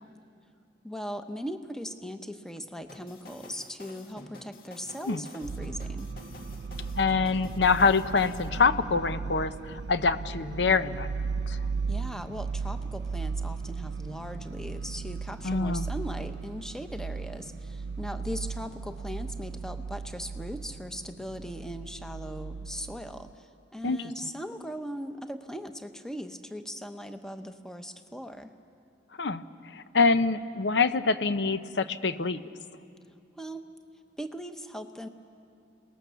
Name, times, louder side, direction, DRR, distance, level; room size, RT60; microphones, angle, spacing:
voice 1, 0.8-6.1 11.9-28.5 33.1-33.7 34.2-35.1, equal, 5° left, 7 dB, 0.9 m, -39 dB
sound 1, 2.9-8.6, left 2 dB, 55° left, 1.8 m, -49 dB
sound 2, 5.4-23.3, right 4 dB, 80° right, 0.5 m, -36 dB
voice 2, 7.0-11.1 11.5-11.6 15.4-15.9 23.8-24.0 29.2-29.4 29.7-32.4, left 4 dB, 75° left, 12 dB, 0.8 m, -25 dB
30.0 x 19.0 x 6.9 m, 2.5 s
head